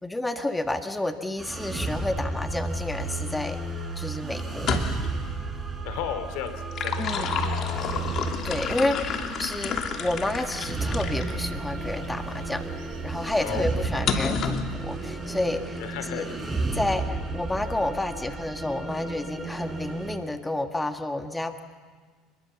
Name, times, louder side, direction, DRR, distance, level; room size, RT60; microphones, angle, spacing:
voice 1, 0.0-3.6 3.9-4.8 7.0-7.5 8.4-16.3 16.7-21.6, left 2 dB, 10° left, 6 dB, 1.6 m, -30 dB
sound 1, 1.4-20.2, right 2 dB, 15° right, 4.9 m, -33 dB
sound 2, 4.6-5.2 6.5-11.3 11.9-12.1 14.1-14.7, left 6 dB, 50° left, 2.9 m, -30 dB
voice 2, 5.8-8.1 13.4-14.1 15.8-16.4, left 10 dB, 75° left, 9 dB, 2.9 m, -36 dB
sound 3, 7.0-13.7, right 7 dB, 70° right, 6.9 m, -42 dB
28.5 x 21.5 x 7.1 m, 1.5 s
supercardioid pair, 100°, 0 cm